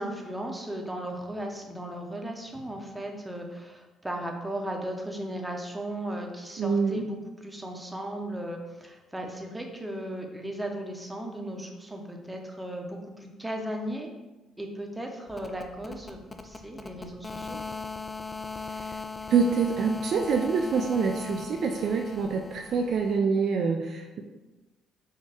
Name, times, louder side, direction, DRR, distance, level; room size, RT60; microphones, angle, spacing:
voice 1, 0.0-7.2 7.4-14.1 14.6-17.6, right 1 dB, 10° right, 2 dB, 0.8 m, -36 dB
voice 2, 6.6-7.1 18.7-18.9 19.3-24.2, right 5 dB, 55° right, 3 dB, 0.3 m, -26 dB
sound 1, 15.3-23.2, left 4 dB, 30° left, 0.4 m, -40 dB
4.2 x 2.3 x 3.4 m, 1.1 s
hypercardioid pair, 45°, 0 cm